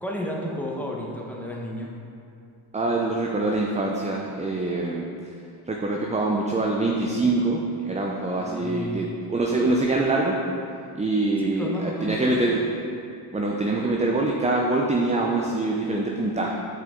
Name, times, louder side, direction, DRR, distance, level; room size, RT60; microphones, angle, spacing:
voice 1, 0.0-1.9 8.4-9.1 11.4-12.3, left 1 dB, 5° left, -2 dB, 1.2 m, -32 dB
voice 2, 2.7-5.1 5.7-10.4 11.0-12.6 13.3-16.6, right 2 dB, 15° right, -1 dB, 0.6 m, -24 dB
7.8 x 4.8 x 3.9 m, 2.5 s
supercardioid pair, 65°, 50 cm